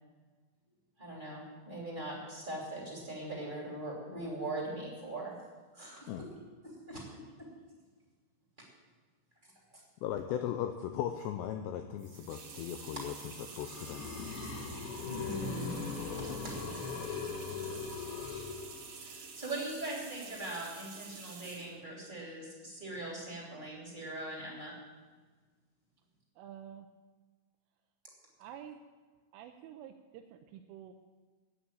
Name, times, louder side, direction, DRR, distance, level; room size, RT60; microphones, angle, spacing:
voice 1, 1.0-5.3 5.7-6.3 6.6-7.0 7.4-7.5 15.1-15.7 16.1-16.3 19.0-24.7, right 2 dB, 15° right, -4 dB, 2.3 m, -41 dB
voice 2, 10.0-13.1 13.6-14.3 16.3-16.4, left 10 dB, 85° left, 6 dB, 2.4 m, -37 dB
sound 1, 12.0-21.8, right 5 dB, 55° right, 2.6 m, -48 dB
sound 2, 13.3-19.2, left 5 dB, 65° left, 2.8 m, -40 dB
voice 3, 26.4-26.9 28.4-28.8 29.3-30.9, right 10 dB, 85° right, 3 dB, 3.2 m, -49 dB
9.9 x 8.7 x 9.0 m, 1.4 s
omnidirectional pair, 5.7 m